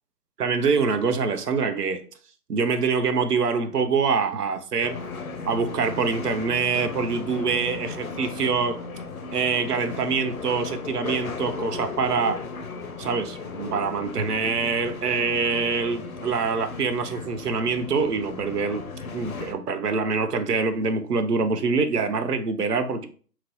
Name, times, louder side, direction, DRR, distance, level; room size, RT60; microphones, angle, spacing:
voice 1, 0.4-2.0 2.5-5.0 5.4-8.8 9.3-12.4 13.0-18.9 19.1-23.1, right 5 dB, 70° right, 8 dB, 0.7 m, -25 dB
sound 1, 4.8-19.5, left 4 dB, 60° left, 0.5 m, -36 dB
3.0 x 2.5 x 2.8 m, 0.42 s
figure-of-eight pair, 145°, 49 cm